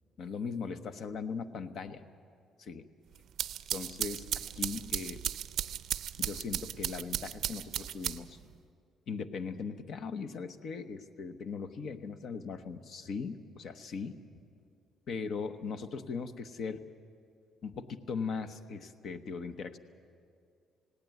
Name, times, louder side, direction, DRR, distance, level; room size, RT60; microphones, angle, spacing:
voice 1, 0.2-2.0 2.6-2.9 3.7-4.3 4.6-5.2 6.2-8.4 9.1-14.2 15.1-16.8 17.6-19.8, left 5 dB, 55° left, 10 dB, 1.0 m, -39 dB
sound 1, 3.2-8.5, right 11 dB, 65° right, 0.5 m, -36 dB
19.0 x 17.0 x 9.2 m, 2.3 s
cardioid pair, 130°, 0 cm